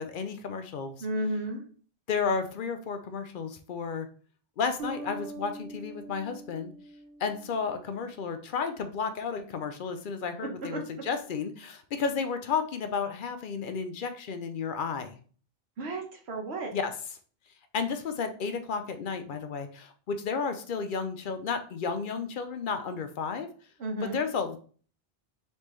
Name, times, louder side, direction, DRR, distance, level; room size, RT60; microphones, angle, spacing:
voice 1, 0.0-1.0 2.1-4.1 4.6-6.7 7.2-15.2 16.7-16.9 17.7-23.5 24.0-24.6, left 5 dB, 60° left, 8 dB, 0.7 m, -32 dB
voice 2, 1.0-1.6 10.4-10.8 15.8-16.7 23.8-24.2, right 1 dB, 85° right, 2 dB, 1.2 m, -33 dB
sound 1, 4.8-8.1, right 2 dB, 60° right, 1.1 m, -43 dB
4.2 x 3.5 x 3.1 m, 0.42 s
omnidirectional pair, 1.1 m